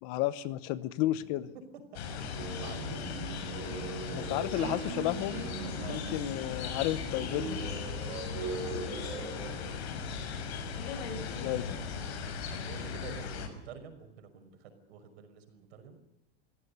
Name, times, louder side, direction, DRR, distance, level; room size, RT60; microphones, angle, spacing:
voice 1, 0.0-1.4 4.1-5.4 5.8-7.6 11.2-11.8, left 15 dB, 45° left, 16 dB, 1.0 m, -32 dB
sound 1, 1.9-13.5, left 5 dB, 85° left, 5.8 m, -38 dB
voice 2, 1.9-3.1 4.0-4.7 5.8-6.0 8.5-8.7 11.3-11.9 12.5-16.0, right 7 dB, 80° right, 7 dB, 5.7 m, -48 dB
sound 2, 2.3-9.7, right 4 dB, 45° right, 7.1 m, -40 dB
24.0 x 16.0 x 8.3 m, 0.90 s
supercardioid pair, 155°, 31 cm